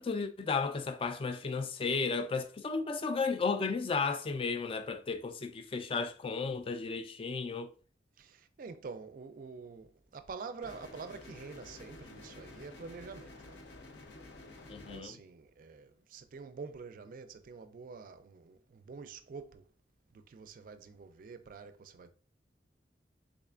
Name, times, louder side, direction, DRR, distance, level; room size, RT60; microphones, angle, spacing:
voice 1, 0.0-7.7 14.7-15.2, left 4 dB, 30° left, 0.3 m, -34 dB
voice 2, 8.2-13.6 14.9-19.7 20.1-22.1, right 5 dB, 50° right, 0.4 m, -47 dB
sound 1, 10.6-15.0, left 2 dB, 75° left, 0.7 m, -51 dB
3.6 x 3.2 x 2.4 m
head